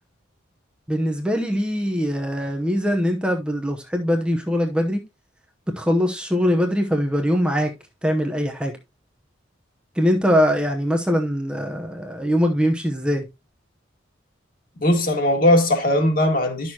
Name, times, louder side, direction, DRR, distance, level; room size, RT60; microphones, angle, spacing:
voice 1, 0.9-5.0 5.8-7.7 8.0-8.7 10.0-13.2, equal, 5° right, 0.8 m, -22 dB
voice 2, 14.8-16.7, left 1 dB, 45° left, 2.1 m, -19 dB
11.0 x 6.4 x 2.9 m
head